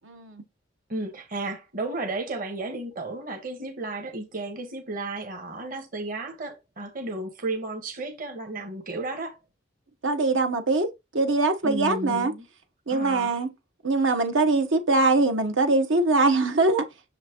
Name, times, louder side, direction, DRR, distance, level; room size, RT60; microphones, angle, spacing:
voice 1, 0.1-0.4 10.0-10.9 11.1-12.3 12.9-13.5 13.8-16.9, right 3 dB, 75° right, 1.2 m, -22 dB
voice 2, 0.9-9.3 11.6-12.4 12.9-13.3, right 2 dB, 45° right, 1.5 m, -33 dB
6.8 x 5.9 x 3.0 m
head